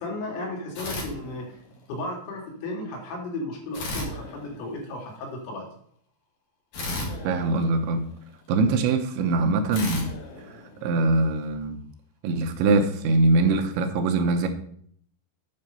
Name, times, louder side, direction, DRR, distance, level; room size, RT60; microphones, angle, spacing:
voice 1, 0.0-1.6 1.9-5.7, left 2 dB, 75° left, -1 dB, 4.5 m, -34 dB
sound 1, 0.7-1.9 3.7-5.1 6.7-8.4 9.7-11.3, left 1 dB, 55° left, 2.6 m, -35 dB
voice 2, 7.2-8.0 8.5-11.8 12.2-14.5, right 3 dB, 80° right, 5 dB, 3.1 m, -23 dB
9.0 x 5.5 x 5.5 m, 0.62 s
omnidirectional pair, 5.4 m